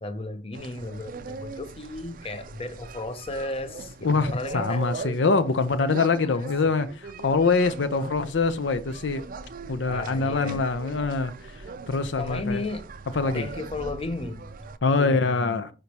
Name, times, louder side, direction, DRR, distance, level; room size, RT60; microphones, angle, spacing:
voice 1, 0.0-4.9 6.2-6.4 9.9-10.6 12.2-12.9 13.3-14.7 15.0-15.6, left 2 dB, 30° left, 0.7 m, -34 dB
sound 1, 0.5-14.8, right 4 dB, 50° right, 0.5 m, -40 dB
voice 2, 4.0-9.3 9.7-12.6 13.1-13.5 14.8-15.7, left 4 dB, 75° left, 0.6 m, -24 dB
6.3 x 5.2 x 2.8 m
head